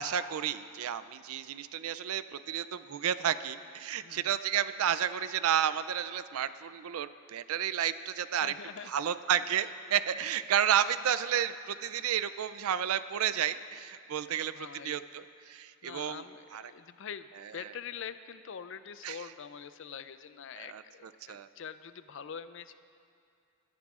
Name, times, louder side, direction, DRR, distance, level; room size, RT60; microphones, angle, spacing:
voice 1, 0.0-8.5 8.9-16.2 16.5-16.6 17.6-17.7 19.0-19.2 20.6-21.5, right 9 dB, 80° right, 14 dB, 0.4 m, -31 dB
voice 2, 4.0-4.4 8.4-9.0 9.5-9.6 10.2-10.3 14.3-15.0 15.8-22.8, left 7 dB, 60° left, 12 dB, 0.4 m, -45 dB
21.5 x 12.5 x 2.4 m, 2.4 s
head